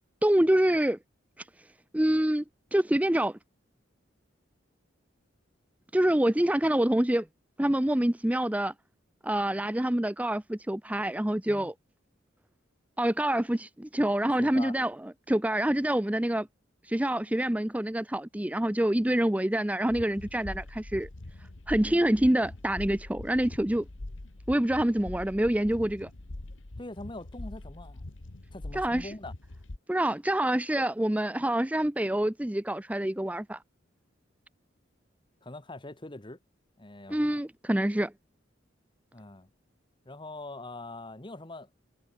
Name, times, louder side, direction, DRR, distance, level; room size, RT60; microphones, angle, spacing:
voice 1, 0.2-1.0 1.9-2.4 2.7-3.4 5.9-7.3 7.6-8.7 9.2-11.7 13.0-15.0 15.3-16.5 16.8-21.1 21.7-23.8 24.5-26.1 28.7-29.1 29.9-33.6 37.1-38.1, right 1 dB, 10° right, 0.6 m, -26 dB
voice 2, 14.4-14.8 26.8-28.1 28.5-29.3 35.4-36.4 36.8-37.4 39.1-39.5 40.0-41.7, left 2 dB, 25° left, 1.4 m, -43 dB
sound 1, 19.9-29.8, left 1 dB, 85° left, 1.4 m, -43 dB
head